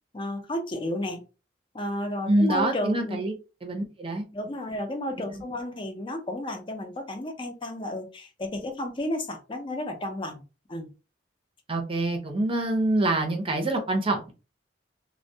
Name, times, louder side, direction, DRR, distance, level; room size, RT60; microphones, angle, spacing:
voice 1, 0.1-1.2 1.7-3.2 4.3-10.4 10.7-10.9, left 1 dB, 30° left, 4 dB, 0.5 m, -32 dB
voice 2, 2.3-3.3 3.6-4.2 11.7-14.3, right 2 dB, 30° right, 4 dB, 0.6 m, -25 dB
2.2 x 2.2 x 2.7 m, 0.31 s
head